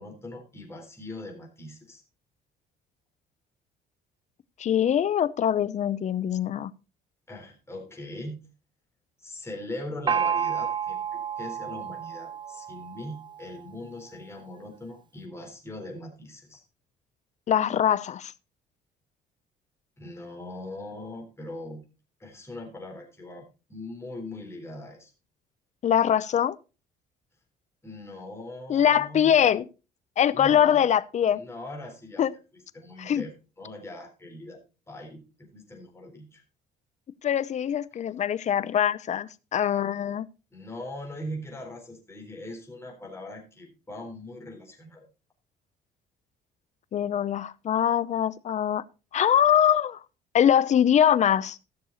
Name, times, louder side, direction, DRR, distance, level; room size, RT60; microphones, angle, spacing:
voice 1, 0.0-2.0 7.3-8.5 9.2-16.6 20.0-21.8 22.2-25.1 27.8-29.5 30.3-30.9 31.3-32.3 32.7-34.6 34.9-36.4 40.5-45.1, left 1 dB, 15° left, 3.9 m, -41 dB
voice 2, 4.6-6.7 17.5-18.3 25.8-26.6 28.7-29.6 30.2-31.4 32.2-32.3 33.0-33.2 37.2-40.3 46.9-48.8 49.1-50.0 50.3-51.6, left 9 dB, 45° left, 0.7 m, -23 dB
Gong, 10.1-13.6, right 8 dB, 30° right, 0.5 m, -30 dB
14.0 x 6.7 x 4.0 m
cardioid pair, 110°, 17 cm